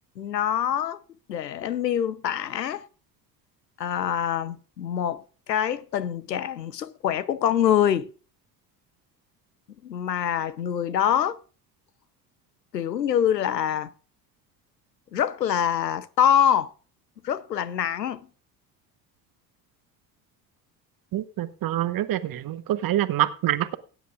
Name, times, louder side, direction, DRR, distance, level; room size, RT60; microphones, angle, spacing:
voice 1, 0.2-1.0 1.3-2.9 3.8-5.2 5.5-8.1 9.8-11.4 12.7-13.9 15.1-16.7 17.2-18.2, left 9 dB, 85° left, 0.8 m, -25 dB
voice 2, 21.1-23.7, right 13 dB, 45° right, 1.3 m, -26 dB
18.0 x 9.8 x 2.5 m
figure-of-eight pair, 60°, 48 cm